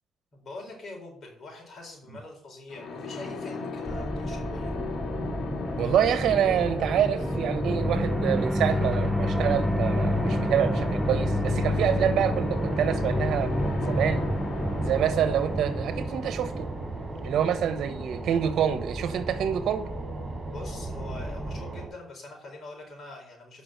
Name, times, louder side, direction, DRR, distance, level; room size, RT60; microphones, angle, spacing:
voice 1, 0.3-4.7 20.5-23.6, left 2 dB, 45° left, 4.4 m, -43 dB
sound 1, 2.7-17.4, left 3 dB, 60° left, 2.3 m, -36 dB
sound 2, 3.9-21.6, equal, 5° right, 0.7 m, -30 dB
voice 2, 5.8-14.2 14.8-16.7 17.2-19.9, right 9 dB, 75° right, 1.2 m, -27 dB
sound 3, 10.0-21.9, right 3 dB, 30° right, 5.4 m, -38 dB
8.6 x 6.3 x 7.5 m
cardioid pair, 90°, 0 cm